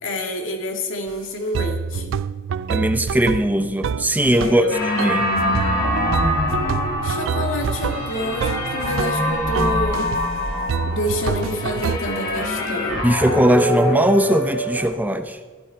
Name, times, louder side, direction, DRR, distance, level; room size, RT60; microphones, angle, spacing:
voice 1, 0.0-2.2 4.4-4.8 7.0-10.1 10.9-13.1, left 1 dB, 85° left, 2 dB, 2.1 m, -28 dB
sound 1, 1.1-1.2 1.5-4.6 5.0-5.3 5.5-9.2 9.5-10.3 10.7-12.0, right 6 dB, 75° right, 0.3 m, -27 dB
voice 2, 2.7-4.7 5.0-5.3 13.0-15.4, right 1 dB, 10° right, 7 dB, 0.6 m, -19 dB
sound 2, 4.7-14.9, left 1 dB, 50° left, 5.3 m, -24 dB
15.0 x 12.5 x 4.5 m, 1.3 s
head